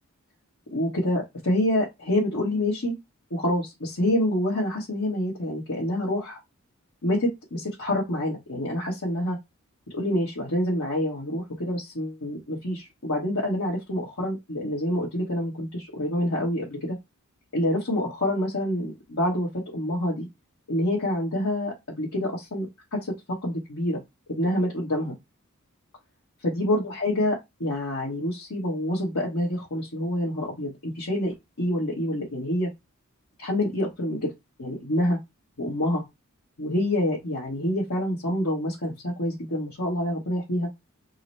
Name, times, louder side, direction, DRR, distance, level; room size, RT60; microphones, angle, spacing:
voice 1, 0.7-2.9 3.3-6.4 7.0-9.4 9.9-17.0 17.5-20.3 20.7-23.1 23.4-24.0 24.3-25.1 26.4-32.7 33.4-34.3 34.6-35.2 35.6-36.0 36.6-40.7, left 1 dB, 85° left, 1.3 m, -27 dB
3.8 x 2.1 x 4.2 m
head